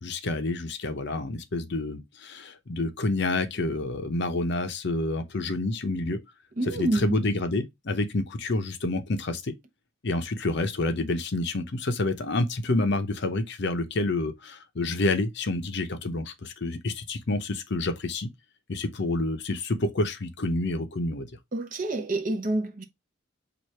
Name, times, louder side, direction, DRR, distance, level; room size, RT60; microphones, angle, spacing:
voice 1, 0.0-6.2 6.8-9.5 10.0-18.3 18.7-21.3, left 2 dB, 55° left, 0.7 m, -28 dB
voice 2, 6.6-7.2 21.5-22.8, right 2 dB, 40° right, 0.8 m, -28 dB
4.7 x 2.5 x 4.2 m
head